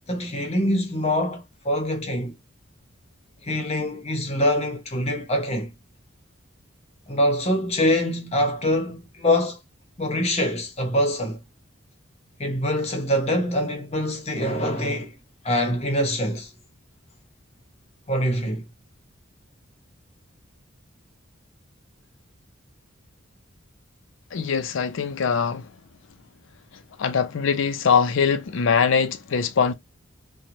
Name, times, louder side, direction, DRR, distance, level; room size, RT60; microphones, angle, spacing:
voice 1, 0.1-2.3 3.4-5.7 7.1-9.6 10.0-11.4 12.4-15.1 15.4-16.5 18.1-18.6, left 1 dB, 30° left, 0.8 m, -24 dB
voice 2, 24.3-25.6 27.0-29.7, left 6 dB, 70° left, 0.4 m, -22 dB
3.0 x 2.1 x 2.6 m
head